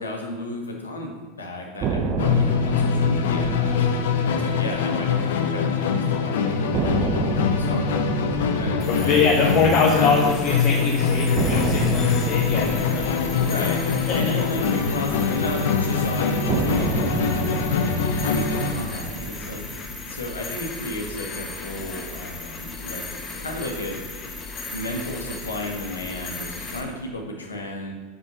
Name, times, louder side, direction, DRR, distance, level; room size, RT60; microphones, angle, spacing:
voice 1, 0.0-3.9 4.2-8.2 8.5-9.5 10.0-10.1 13.3-13.8 14.1-19.6 20.1-23.0 23.4-24.0 24.7-27.9, left 1 dB, 85° left, 1 dB, 1.4 m, -33 dB
sound 1, 1.8-5.9 6.2-6.3 6.7-10.8 11.4-15.7 16.5-20.8, right 5 dB, 40° right, 0.9 m, -30 dB
Musical instrument, 2.2-18.8, left 5 dB, 70° left, 0.8 m, -23 dB
sound 2, 8.8-26.8, left 3 dB, 30° left, 1.4 m, -36 dB
voice 2, 8.9-13.6 14.1-14.2 14.8-14.9, left 5 dB, 45° left, -3 dB, 1.2 m, -23 dB
6.2 x 5.4 x 6.9 m, 1.4 s
figure-of-eight pair, 80°, 0 cm